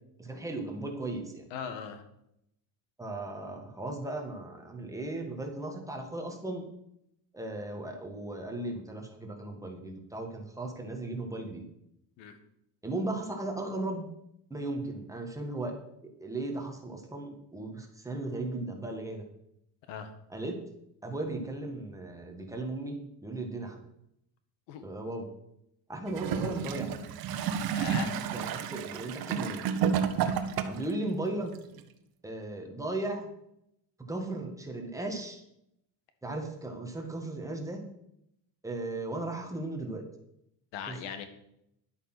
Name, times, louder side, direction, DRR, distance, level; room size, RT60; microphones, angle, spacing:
voice 1, 0.2-1.4 3.0-6.6 7.3-11.6 12.8-14.1 14.5-15.7 16.2-19.2 20.3-20.6 21.0-23.9 24.8-25.3 25.9-26.9 28.3-29.6 30.6-31.5 32.2-33.3 34.0-35.4 36.2-37.8 38.6-40.0 40.9-41.0, right 2 dB, 5° right, 2 dB, 1.7 m, -36 dB
voice 2, 1.5-2.0 12.2-12.4 19.9-20.1 24.7-24.9 27.7-28.1 30.2-30.4 40.7-41.3, left 7 dB, 90° left, 9 dB, 1.8 m, -39 dB
Gurgling / Toilet flush, 26.1-31.0 31.8-31.9, right 7 dB, 55° right, 1.1 m, -31 dB
11.5 x 8.2 x 6.1 m, 0.78 s
cardioid pair, 160°, 43 cm